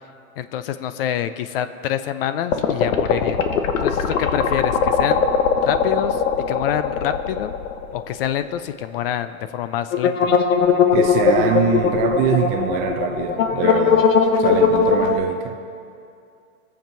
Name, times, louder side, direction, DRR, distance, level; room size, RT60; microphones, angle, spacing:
voice 1, 0.4-3.4 3.8-5.2 5.6-6.2 6.5-7.5 7.9-10.3, left 10 dB, 45° left, 12 dB, 0.5 m, -26 dB
sound 1, 2.5-8.2 8.5-8.6 9.9-15.2, left 6 dB, 65° left, 1.1 m, -19 dB
voice 2, 10.9-14.1 14.4-15.6, right 8 dB, 25° right, 5 dB, 0.5 m, -23 dB
21.5 x 7.4 x 4.5 m, 2.4 s
hypercardioid pair, 135°, 42 cm